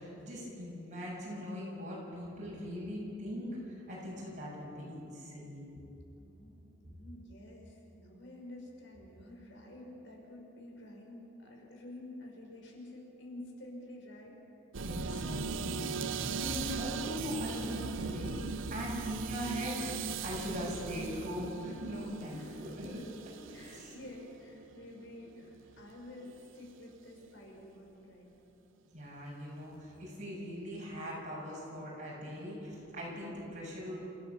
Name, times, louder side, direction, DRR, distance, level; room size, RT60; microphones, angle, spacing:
voice 1, 0.0-5.8 14.8-23.0 23.5-23.9 28.9-34.0, equal, 40° right, -4 dB, 7.2 m, -41 dB
voice 2, 6.2-14.4 22.3-22.9 23.5-28.3, left 1 dB, 70° left, -1 dB, 5.7 m, -50 dB
sound 1, 14.7-25.8 26.1-26.5, right 5 dB, 90° right, 0.8 m, -39 dB
28.5 x 15.5 x 7.2 m, 3.0 s
head